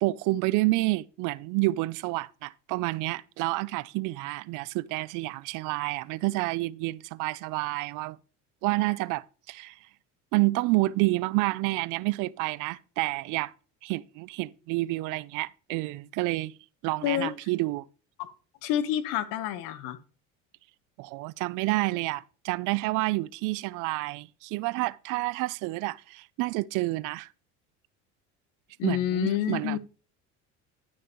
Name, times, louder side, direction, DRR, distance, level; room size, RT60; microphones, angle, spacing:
voice 1, 0.0-8.2 8.6-9.8 10.3-13.5 13.8-16.5 16.8-17.9 21.0-27.3 28.8-29.8, right 21 dB, 65° right, 0.5 m, -29 dB
voice 2, 18.6-20.0 28.8-29.8, left 11 dB, 75° left, 1.1 m, -28 dB
11.5 x 6.5 x 3.0 m
supercardioid pair, 95°, 34 cm